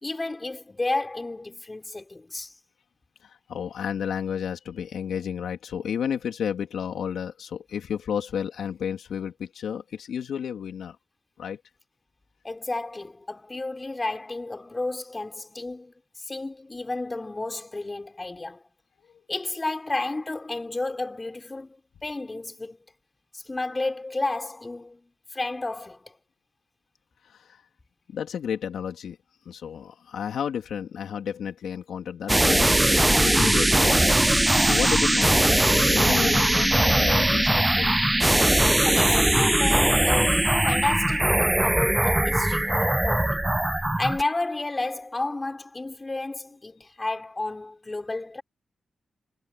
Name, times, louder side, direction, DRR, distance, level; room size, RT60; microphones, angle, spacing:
voice 1, 0.0-2.5 12.4-15.9 16.3-18.6 19.3-22.8 23.3-26.2 38.8-43.5 44.0-48.4, left 2 dB, 30° left, 5.0 m, -32 dB
voice 2, 3.2-11.0 11.4-11.6 27.2-27.6 28.1-29.2 29.4-38.0, left 8 dB, 80° left, 2.9 m, -32 dB
sound 1, 32.3-44.2, right 1 dB, 15° right, 0.6 m, -20 dB
supercardioid pair, 50°, 0 cm